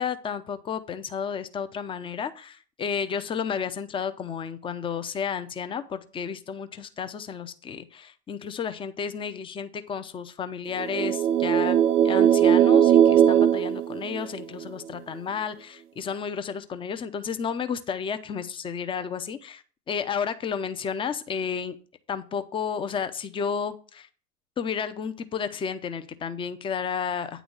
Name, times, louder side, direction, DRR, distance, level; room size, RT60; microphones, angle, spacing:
voice 1, 0.0-11.8 12.0-21.8 22.1-24.1 24.6-27.4, left 6 dB, 10° left, 11 dB, 0.5 m, -32 dB
sound 1, 10.8-14.6, right 9 dB, 75° right, 0.7 m, -19 dB
9.2 x 4.0 x 6.0 m, 0.40 s
figure-of-eight pair, 90°, 46 cm